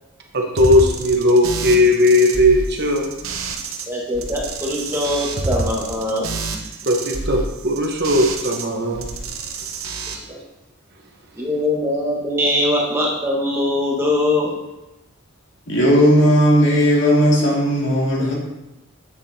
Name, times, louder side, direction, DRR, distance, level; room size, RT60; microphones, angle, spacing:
voice 1, 0.3-3.1 6.9-9.1, left 1 dB, 50° right, 1 dB, 1.0 m, -17 dB
sound 1, 0.6-3.8 4.1-8.6 8.9-10.1, right 3 dB, 80° right, 0.9 m, -28 dB
voice 2, 3.9-6.3 10.3-10.4 11.3-14.5, left 1 dB, 10° right, -4 dB, 1.4 m, -22 dB
voice 3, 15.7-18.3, equal, 55° left, -5 dB, 2.2 m, -15 dB
8.4 x 7.1 x 2.8 m, 0.96 s
head